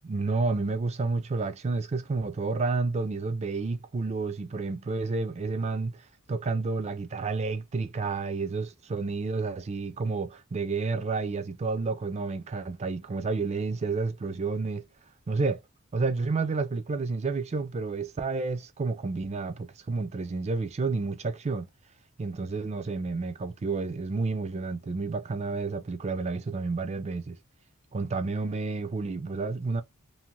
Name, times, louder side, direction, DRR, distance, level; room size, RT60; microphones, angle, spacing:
voice 1, 0.0-6.0 6.3-14.9 15.3-15.6 15.9-21.7 22.2-27.4 27.9-29.8, right 3 dB, 30° right, 0.3 m, -30 dB
2.6 x 2.1 x 2.9 m
head